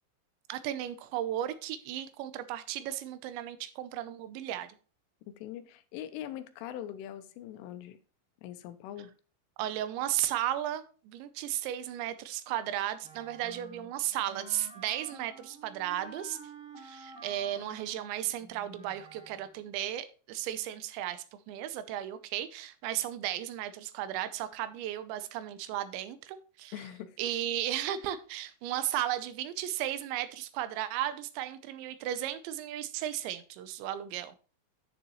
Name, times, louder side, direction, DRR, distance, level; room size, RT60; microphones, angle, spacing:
voice 1, 0.5-4.8 9.6-16.4 16.8-26.7 27.2-34.3, right 12 dB, 80° right, 2.7 m, -35 dB
voice 2, 5.3-8.0 8.4-9.1 26.7-27.2, left 11 dB, 80° left, 3.1 m, -42 dB
Wind instrument woodwind instrument, 13.0-19.6, right 4 dB, ahead, 1.3 m, -50 dB
11.0 x 6.6 x 3.1 m
omnidirectional pair, 5.9 m